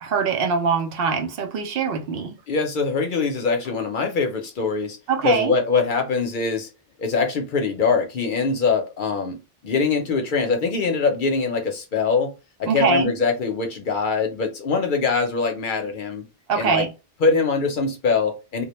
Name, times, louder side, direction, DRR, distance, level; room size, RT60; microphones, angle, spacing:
voice 1, 0.0-2.4 5.1-5.5 12.7-13.1 16.5-16.9, right 5 dB, 70° right, 0.8 m, -22 dB
voice 2, 2.5-5.0 5.2-6.7 7.0-12.3 12.6-16.3 16.6-16.9 17.2-18.6, left 4 dB, 60° left, 0.7 m, -23 dB
2.2 x 2.1 x 2.9 m
omnidirectional pair, 1.0 m